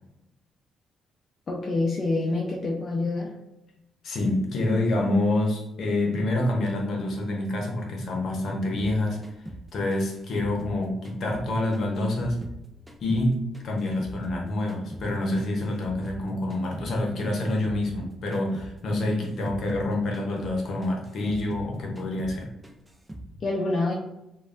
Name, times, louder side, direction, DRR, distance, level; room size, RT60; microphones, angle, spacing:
voice 1, 1.5-3.3 23.4-23.9, left 2 dB, 40° left, -2 dB, 0.5 m, -26 dB
voice 2, 4.0-9.2 9.7-12.4 13.0-22.5, left 1 dB, 65° left, 0 dB, 0.8 m, -27 dB
sound 1, 8.8-11.5 11.7-14.4 14.7-18.1 18.3-18.7 19.0-21.7 22.0-22.4 22.6-23.3, right 1 dB, 15° right, 0.4 m, -42 dB
3.1 x 2.3 x 2.5 m, 0.90 s
cardioid pair, 90°, 0 cm